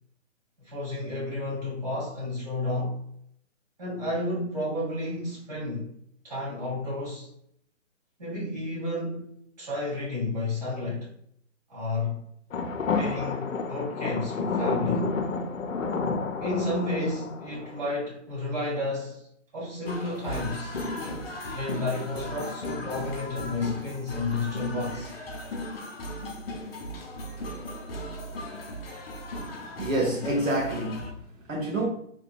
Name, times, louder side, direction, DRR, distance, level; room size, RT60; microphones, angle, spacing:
voice 1, 0.6-3.0 3.8-5.9 6.2-7.3 8.2-11.1 11.7-12.2 12.9-15.1 16.4-19.2 19.5-20.8 21.5-25.1, left 2 dB, 30° right, 1.5 m, -31 dB
sound 1, 12.5-17.9, left 4 dB, 90° left, 0.6 m, -30 dB
sound 2, 19.9-31.1, left 1 dB, 50° left, 0.6 m, -36 dB
voice 2, 29.3-31.9, right 1 dB, 75° right, 1.0 m, -29 dB
2.8 x 2.7 x 2.2 m
hypercardioid pair, 165°, 39 cm